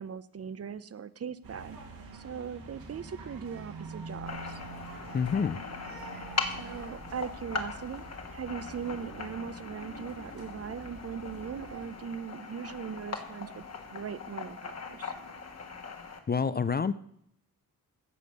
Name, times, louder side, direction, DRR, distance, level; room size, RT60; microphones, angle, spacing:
voice 1, 0.0-1.8 2.1-4.6 6.6-8.0 8.3-13.7 13.9-15.1, right 7 dB, 45° right, 15 dB, 0.6 m, -39 dB
sound 1, 1.4-11.9, right 3 dB, 85° right, 2.7 m, -46 dB
sound 2, 4.3-16.2, left 4 dB, 45° left, 1.6 m, -40 dB
voice 2, 5.1-5.6 16.3-16.9, left 6 dB, 30° left, 15 dB, 0.5 m, -27 dB
15.5 x 5.2 x 6.5 m, 0.71 s
wide cardioid pair, 110°, 34 cm